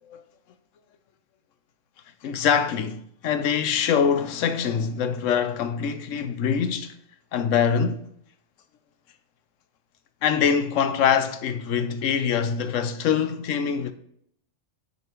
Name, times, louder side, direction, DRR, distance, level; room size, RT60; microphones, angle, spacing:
voice 1, 2.2-7.0 7.3-8.0 10.2-13.9, left 7 dB, 80° left, 1.0 m, -24 dB
9.5 x 4.1 x 4.5 m
omnidirectional pair, 1.3 m